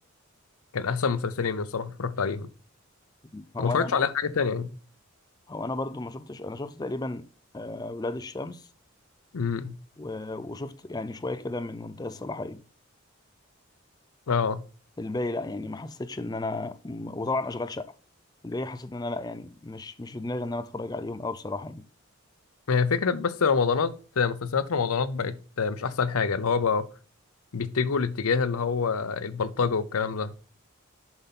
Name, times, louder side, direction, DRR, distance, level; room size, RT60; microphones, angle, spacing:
voice 1, 0.7-2.5 3.6-4.7 9.3-9.7 14.3-14.6 22.7-26.9 27.5-30.4, left 5 dB, 80° left, 0.6 m, -26 dB
voice 2, 3.3-4.1 5.5-7.3 7.5-8.7 10.0-12.6 15.0-17.9 18.4-21.9, left 2 dB, 20° left, 0.4 m, -33 dB
7.0 x 5.5 x 4.1 m
head